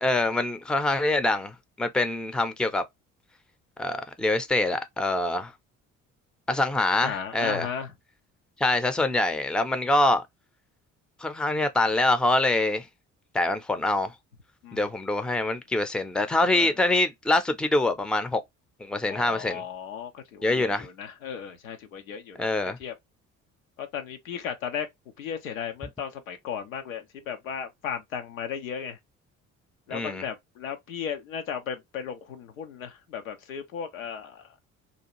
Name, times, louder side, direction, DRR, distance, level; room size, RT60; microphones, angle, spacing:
voice 1, 0.0-2.8 3.8-5.5 6.5-7.7 8.6-10.2 11.2-12.9 13.3-14.1 14.7-18.4 18.8-19.6 20.4-20.9 22.4-22.8 29.9-30.2, left 2 dB, ahead, 0.5 m, -25 dB
voice 2, 7.0-7.9 14.6-14.8 16.5-16.7 19.1-22.9 23.8-24.9 25.2-29.0 29.9-34.5, left 7 dB, 90° left, 0.6 m, -35 dB
2.7 x 2.3 x 2.8 m
hypercardioid pair, 50°, 40 cm